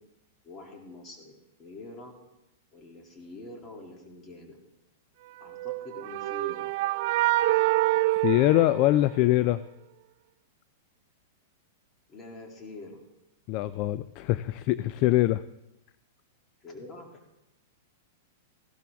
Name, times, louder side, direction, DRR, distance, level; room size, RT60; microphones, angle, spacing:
voice 1, 0.4-2.1 2.7-4.6 5.4-6.8 12.1-13.0 16.6-17.2, left 2 dB, 25° left, 2 dB, 2.7 m, -45 dB
sound 1, 5.5-9.4, right 18 dB, 55° right, 0.3 m, -26 dB
voice 2, 8.1-9.6 13.5-15.4, left 16 dB, 45° left, 16 dB, 0.3 m, -23 dB
15.5 x 12.5 x 3.5 m, 0.92 s
hypercardioid pair, 125°, 0 cm